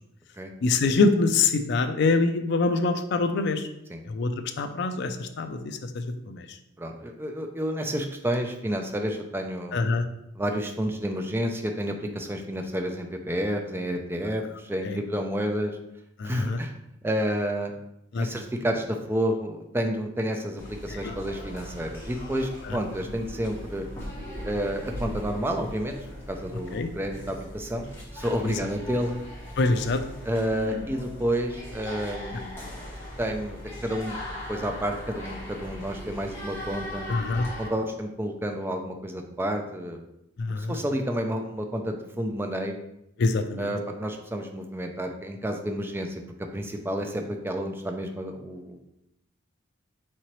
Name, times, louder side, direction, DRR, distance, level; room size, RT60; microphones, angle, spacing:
voice 1, 0.6-3.7 4.1-4.3 4.6-6.6 9.7-10.0 14.8-15.0 16.2-16.6 18.1-18.3 20.9-21.1 22.6-22.8 26.7-26.9 28.4-28.5 29.6-30.0 37.1-37.4 40.4-40.8 43.2-43.7, left 3 dB, 55° left, 7 dB, 0.4 m, -25 dB
voice 2, 6.8-9.8 10.4-15.8 16.2-16.7 17.0-17.7 18.2-23.9 24.4-26.0 26.3-29.2 30.2-32.6 33.2-34.2 34.5-37.1 37.6-40.0 40.5-42.8 43.6-46.2 46.5-48.8, equal, 10° right, 4 dB, 0.4 m, -30 dB
sound 1, 20.6-37.7, left 1 dB, 10° left, 1.2 m, -39 dB
Sigh, 30.3-31.0, left 1 dB, 50° right, 0.7 m, -37 dB
4.4 x 3.8 x 3.0 m, 0.83 s
head